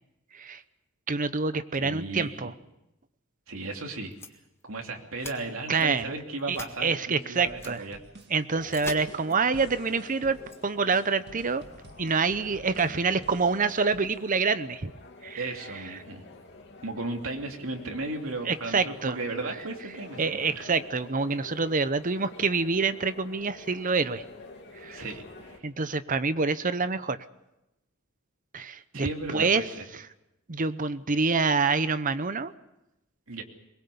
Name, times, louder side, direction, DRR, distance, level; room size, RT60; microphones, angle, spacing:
voice 1, 1.1-2.5 5.7-6.1 6.5-7.8 8.3-10.4 10.6-11.6 12.0-14.9 15.2-15.4 18.5-19.2 20.2-24.2 24.7-25.0 25.6-27.2 28.5-29.6 30.5-32.5, right 4 dB, 40° right, 13 dB, 0.8 m, -27 dB
voice 2, 1.7-2.5 3.5-4.1 4.6-8.0 15.4-16.2 16.8-20.2 20.5-20.6 24.9-25.6 28.9-29.7 33.3-33.4, right 2 dB, 75° right, 2 dB, 2.9 m, -35 dB
sound 1, 4.1-4.3 4.6-4.7 5.2-5.3 5.8-6.0 6.4-6.7 7.6-7.7 8.2-8.3 8.7-9.0 9.3-9.4 9.9-10.0 10.4-10.6, left 3 dB, 10° left, 1.7 m, -40 dB
sound 2, 7.3-14.2, right 1 dB, 55° right, 1.8 m, -51 dB
sound 3, 8.5-25.6, left 2 dB, 55° left, 2.8 m, -48 dB
22.5 x 21.0 x 7.1 m, 0.94 s
head